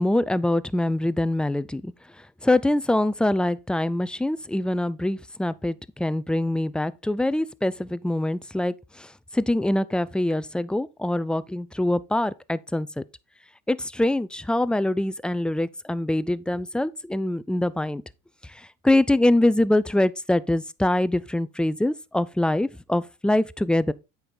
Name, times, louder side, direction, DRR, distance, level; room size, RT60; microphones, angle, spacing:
voice 1, 0.0-1.9 2.4-12.9 13.7-18.0 18.5-23.9, left 1 dB, 5° left, 0.3 m, -24 dB
8.5 x 5.4 x 3.9 m
supercardioid pair, 105°, 33 cm